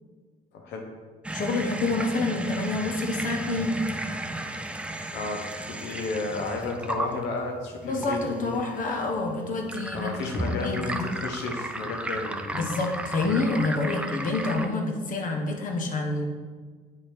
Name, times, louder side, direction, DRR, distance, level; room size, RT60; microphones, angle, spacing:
voice 1, 0.5-0.9 5.1-8.6 9.9-12.7, left 3 dB, 85° left, 2 dB, 0.9 m, -32 dB
sound 1, 1.2-14.7, right 1 dB, 5° right, 0.4 m, -34 dB
voice 2, 1.3-3.8 7.8-10.2 10.4-11.0 12.5-16.3, left 3 dB, 50° left, 3 dB, 1.1 m, -28 dB
8.7 x 3.1 x 4.4 m, 1.5 s
cardioid pair, 110°, 17 cm